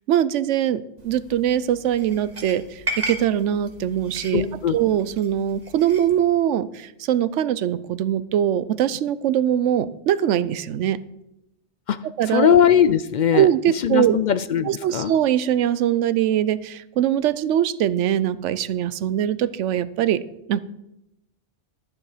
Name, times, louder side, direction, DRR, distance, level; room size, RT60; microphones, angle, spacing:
voice 1, 0.1-4.4 4.7-11.0 12.2-12.5 13.3-14.2 14.7-20.2 20.5-20.6, right 10 dB, 85° right, 16 dB, 0.9 m, -22 dB
sound 1, 1.0-6.2, right 1 dB, 35° right, 1.8 m, -36 dB
voice 2, 4.3-4.8 11.9-13.5 13.8-15.1, left 8 dB, 60° left, 13 dB, 0.5 m, -20 dB
12.0 x 9.5 x 4.9 m, 0.87 s
omnidirectional pair, 1.2 m